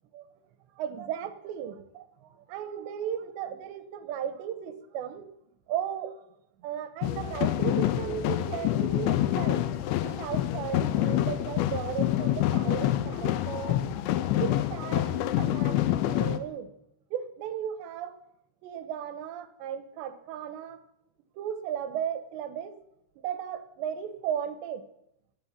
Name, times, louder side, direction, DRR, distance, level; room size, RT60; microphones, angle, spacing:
voice 1, 0.7-5.3 5.7-6.2 6.6-9.7 10.0-13.8 14.3-16.7 17.1-18.1 18.6-20.8 21.4-22.8 23.2-24.8, right 9 dB, 75° right, 11 dB, 3.2 m, -35 dB
sound 1, 7.0-16.4, left 13 dB, 90° left, 3.2 m, -27 dB
16.5 x 7.9 x 9.5 m, 0.80 s
omnidirectional pair, 5.2 m